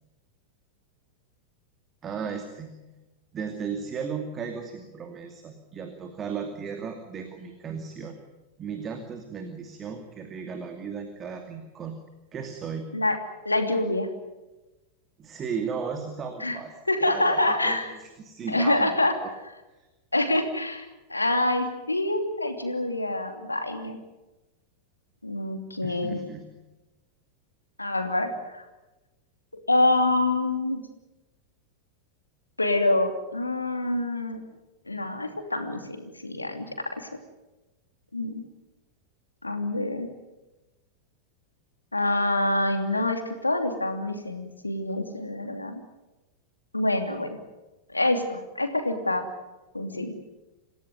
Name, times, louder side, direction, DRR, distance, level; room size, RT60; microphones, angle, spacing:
voice 1, 2.0-2.7 3.3-8.2 8.6-12.0 12.3-12.9 15.2-16.7 17.0-18.9 19.2-19.3 19.8-19.9 25.8-26.4, right 6 dB, 25° right, 6 dB, 2.5 m, -35 dB
voice 2, 13.4-14.1 16.4-16.6 16.9-17.9 18.5-19.2 20.1-20.8 21.1-24.0 25.2-26.2 27.8-28.6 29.7-30.8 32.6-34.4 34.9-37.1 38.1-38.4 39.4-40.1 41.9-45.8 46.7-47.4 47.9-49.2 49.7-50.1, left 2 dB, 80° left, 6 dB, 2.9 m, -26 dB
27.5 x 16.0 x 9.4 m, 1.1 s
figure-of-eight pair, 90°, 0 cm